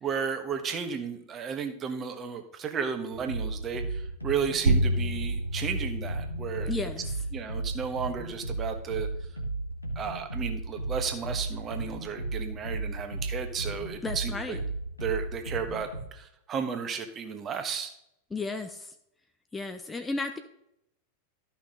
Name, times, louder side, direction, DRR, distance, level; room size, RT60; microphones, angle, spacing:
voice 1, 0.0-6.7 7.3-9.1 9.9-14.6 15.0-17.9, right 6 dB, 25° right, 6 dB, 1.4 m, -33 dB
sound 1, 3.1-16.0, right 2 dB, 90° left, 1.7 m, -35 dB
sound 2, 4.7-9.7, right 1 dB, 70° right, 0.9 m, -31 dB
voice 2, 6.7-7.1 14.0-14.6 18.3-18.9 19.5-20.4, left 3 dB, 10° left, 7 dB, 0.7 m, -34 dB
13.0 x 5.9 x 3.8 m, 0.79 s
figure-of-eight pair, 90°, 0 cm